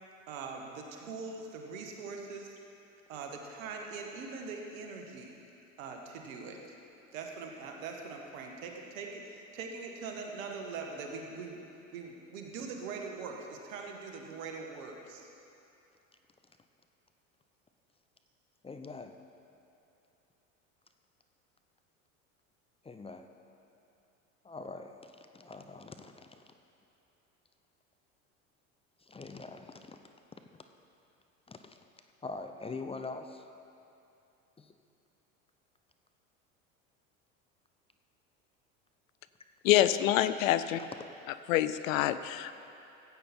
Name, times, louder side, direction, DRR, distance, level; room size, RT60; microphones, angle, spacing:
voice 1, 0.3-2.6 3.1-5.3 5.8-6.7 7.1-11.6 11.9-15.3, right 4 dB, 70° right, 2 dB, 1.7 m, -42 dB
voice 2, 18.6-19.1 22.8-23.3 24.4-26.4 29.0-30.0 30.3-30.4 31.5-31.8 32.2-33.5 34.6-34.7 40.8-40.9, left 3 dB, 15° left, 6 dB, 0.6 m, -44 dB
voice 3, 39.6-40.8 41.5-42.6, left 13 dB, 75° left, 13 dB, 0.6 m, -26 dB
15.0 x 8.5 x 4.4 m, 2.8 s
hypercardioid pair, 80°, 41 cm